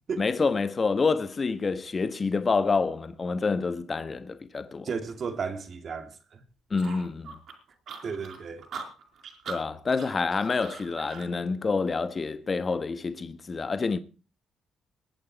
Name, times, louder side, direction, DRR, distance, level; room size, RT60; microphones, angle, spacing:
voice 1, 0.2-4.9 6.7-7.4 9.5-14.0, left 4 dB, 35° left, 1.2 m, -27 dB
voice 2, 4.8-6.4 8.0-8.7, right 5 dB, 50° right, 2.3 m, -34 dB
sound 1, 6.8-11.3, right 5 dB, 65° right, 4.7 m, -41 dB
22.0 x 8.8 x 4.6 m
cardioid pair, 90°, 0 cm